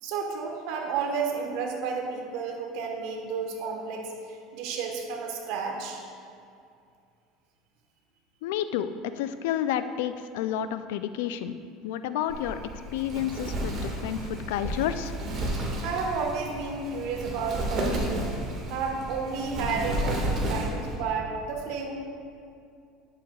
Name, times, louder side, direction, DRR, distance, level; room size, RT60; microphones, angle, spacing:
voice 1, 0.0-6.0 15.8-18.3 18.7-21.9, right 5 dB, 70° right, 2 dB, 1.3 m, -32 dB
voice 2, 8.4-11.5 11.8-12.6 12.9-15.1, left 10 dB, 80° left, 11 dB, 0.4 m, -30 dB
Wind, 12.3-21.0, right 1 dB, 45° right, 1.7 m, -32 dB
10.0 x 7.5 x 2.3 m, 2.4 s
supercardioid pair, 100°, 0 cm